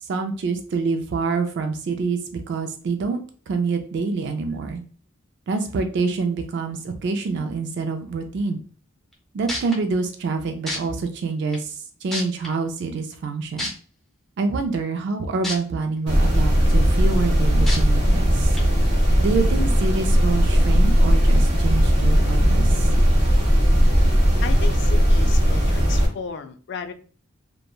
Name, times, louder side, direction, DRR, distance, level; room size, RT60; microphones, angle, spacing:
voice 1, 0.0-2.2 2.5-3.2 3.5-4.8 5.5-8.6 9.3-13.7 14.4-18.6 19.2-22.9, right 4 dB, 60° right, 6 dB, 0.3 m, -26 dB
sound 1, 9.1-9.2 9.5-9.8 10.7-10.8 11.5-11.6 12.1-12.5 13.6-13.7 15.4-15.6 16.1-16.2 17.7-17.8 18.5-18.6, left 1 dB, ahead, 0.5 m, -28 dB
sound 2, 16.1-26.1, equal, 30° right, 0.9 m, -17 dB
voice 2, 24.4-26.9, left 6 dB, 60° left, 8 dB, 0.3 m, -34 dB
2.9 x 2.2 x 2.2 m, 0.41 s
head